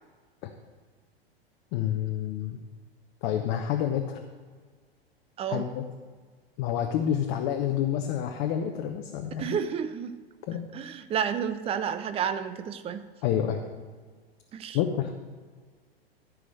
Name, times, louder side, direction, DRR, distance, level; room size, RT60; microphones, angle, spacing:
voice 1, 1.7-2.6 3.2-4.2 5.5-5.8 6.6-9.6 10.5-10.6 13.2-13.6 14.7-15.1, left 10 dB, 40° left, 4 dB, 0.8 m, -28 dB
voice 2, 5.4-5.7 9.4-10.2 10.7-13.0 14.5-14.8, right 8 dB, 20° right, 11 dB, 0.5 m, -31 dB
13.0 x 5.0 x 6.4 m, 1.5 s
figure-of-eight pair, 95°, 31 cm